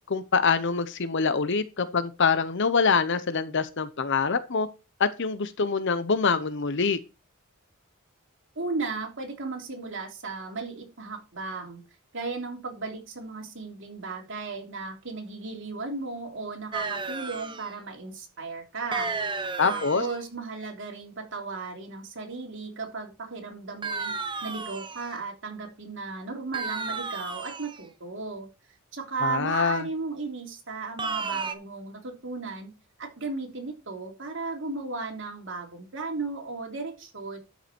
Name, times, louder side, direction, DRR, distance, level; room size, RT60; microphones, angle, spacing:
voice 1, 0.1-4.7 5.0-7.0 19.6-20.0 29.2-29.9, left 5 dB, 60° left, 13 dB, 0.8 m, -25 dB
voice 2, 8.6-11.8 12.1-19.1 19.6-24.2 24.4-28.5 28.9-32.7 33.0-37.4, right 4 dB, 60° right, 1 dB, 3.3 m, -35 dB
sound 1, 16.7-17.7 18.9-20.2 23.8-25.1 26.5-27.8 31.0-31.6, right 4 dB, 25° right, 0.9 m, -33 dB
12.5 x 5.6 x 4.4 m, 0.29 s
head